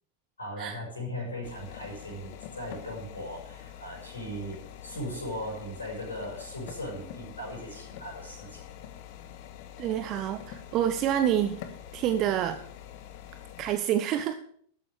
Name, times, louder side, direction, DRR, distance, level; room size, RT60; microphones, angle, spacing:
voice 1, 0.4-8.6, equal, 75° left, -2 dB, 6.1 m, -38 dB
sound 1, 1.4-13.7, left 10 dB, 50° left, 1.5 m, -45 dB
voice 2, 9.8-11.6 11.9-12.6 13.6-14.3, right 10 dB, 35° right, 10 dB, 0.8 m, -27 dB
13.0 x 9.7 x 4.8 m, 0.62 s
figure-of-eight pair, 90°, 0 cm